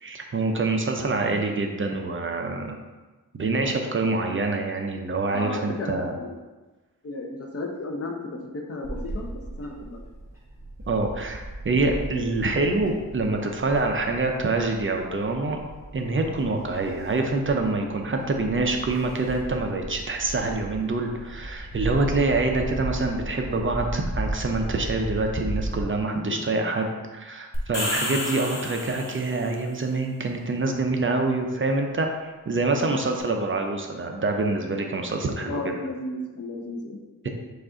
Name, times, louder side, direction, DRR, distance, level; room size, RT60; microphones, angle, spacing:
voice 1, 0.0-2.8 3.3-6.1 10.9-15.6 15.9-35.6, right 3 dB, 35° right, 3 dB, 0.5 m, -26 dB
voice 2, 5.3-6.4 7.0-10.0 12.1-12.2 22.0-22.2 26.3-26.4 35.4-37.3, left 2 dB, 45° left, 2 dB, 0.6 m, -34 dB
Bird / Wind, 8.8-25.8, right 1 dB, 10° right, 1.4 m, -36 dB
sound 1, 27.5-29.5, left 1 dB, 65° left, 1.2 m, -30 dB
4.9 x 2.5 x 3.7 m, 1.2 s
wide cardioid pair, 95°, 34 cm